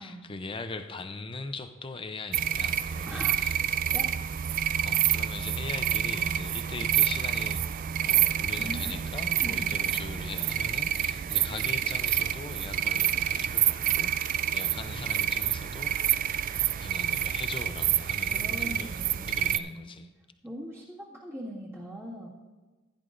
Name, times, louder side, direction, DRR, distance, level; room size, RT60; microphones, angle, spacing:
voice 1, 0.0-3.6 4.8-16.3 16.8-18.9 19.3-20.1, left 3 dB, 25° left, 8 dB, 0.5 m, -40 dB
sound 1, 2.3-19.6, right 10 dB, 40° right, 0.3 m, -28 dB
voice 2, 3.1-3.4 3.6-4.1 8.6-8.9 9.4-9.8 18.3-20.0 20.4-22.3, equal, 10° right, -7 dB, 1.9 m, -41 dB
15.5 x 10.5 x 2.6 m, 1.2 s
head